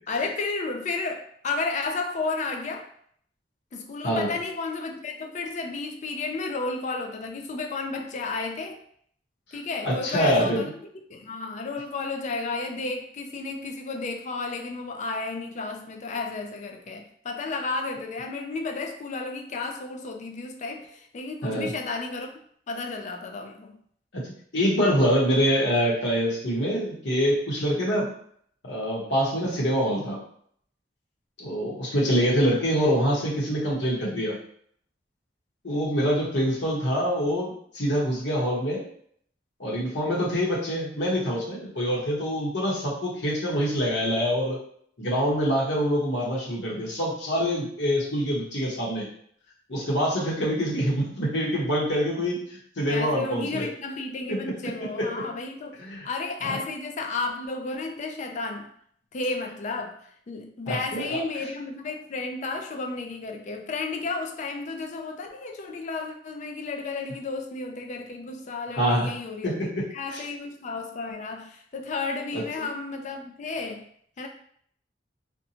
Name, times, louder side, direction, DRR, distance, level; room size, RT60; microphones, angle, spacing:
voice 1, 0.1-2.9 3.7-8.8 9.5-22.3 22.7-23.7 52.9-58.7 59.1-73.9 74.2-74.3, left 3 dB, 40° left, 0.3 m, -32 dB
voice 2, 9.8-10.6 21.4-21.7 24.1-28.1 28.6-30.2 31.4-34.4 35.6-38.8 39.6-44.6 45.0-49.1 49.7-53.6 54.3-54.5 55.0-55.1 55.8-56.1 56.4-56.6 60.7-61.2 68.7-69.1 69.4-69.8 70.1-70.2 72.3-72.7, equal, 70° left, 0.9 m, -25 dB
2.7 x 2.2 x 2.7 m
head